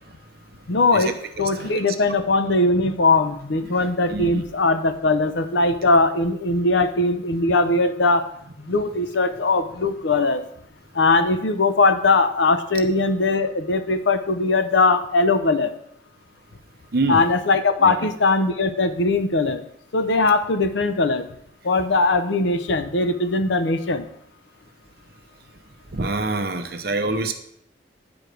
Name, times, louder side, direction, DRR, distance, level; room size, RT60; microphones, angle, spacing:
voice 1, 0.7-8.2 8.6-10.4 10.9-15.7 17.1-19.6 19.9-21.3 21.6-24.1, left 3 dB, 80° left, 9 dB, 0.7 m, -20 dB
voice 2, 3.6-4.4 16.9-17.2 17.8-17.9 25.9-27.3, right 2 dB, 55° right, 7 dB, 0.8 m, -26 dB
9.4 x 4.8 x 5.1 m, 0.70 s
head